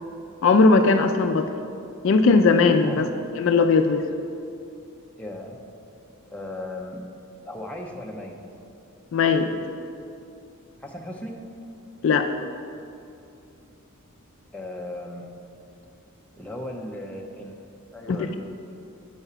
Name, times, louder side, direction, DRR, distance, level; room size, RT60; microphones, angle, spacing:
voice 1, 0.4-1.5 2.0-3.1 3.4-4.0 9.1-9.5 12.0-12.3 18.1-18.3, left 4 dB, 55° left, 7 dB, 0.3 m, -18 dB
voice 2, 2.8-3.2 5.2-5.6 6.3-7.0 7.4-8.4 10.8-11.4 14.5-15.4 16.4-18.4, left 1 dB, 5° left, -1 dB, 0.5 m, -36 dB
7.0 x 4.9 x 5.5 m, 2.6 s
head